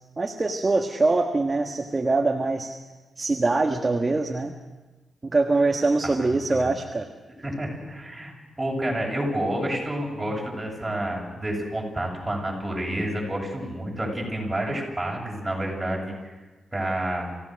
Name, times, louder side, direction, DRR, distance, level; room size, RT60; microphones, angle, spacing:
voice 1, 0.2-2.8 3.2-4.5 5.2-7.1, right 3 dB, 25° right, 3 dB, 1.5 m, -23 dB
voice 2, 6.0-6.7 7.4-16.1 16.7-17.3, right 1 dB, 10° right, -2 dB, 8.0 m, -29 dB
27.5 x 16.5 x 6.5 m, 1.2 s
cardioid pair, 95°, 0 cm